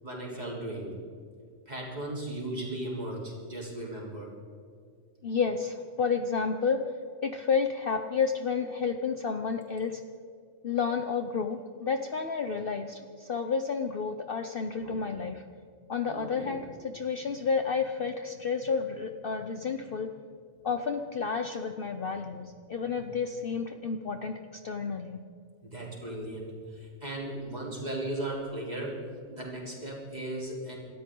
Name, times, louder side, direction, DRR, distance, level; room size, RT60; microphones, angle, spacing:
voice 1, 0.0-0.9 1.7-4.3 14.8-15.0 16.0-16.6 23.0-23.1 25.6-30.7, right 1 dB, 30° right, -3 dB, 3.9 m, -37 dB
voice 2, 5.2-6.8 7.2-10.0 10.6-15.4 15.9-20.1 20.6-24.3 24.6-25.2, left 5 dB, 50° left, 6 dB, 0.8 m, -31 dB
27.0 x 13.0 x 3.8 m, 2.3 s
omnidirectional pair, 1.4 m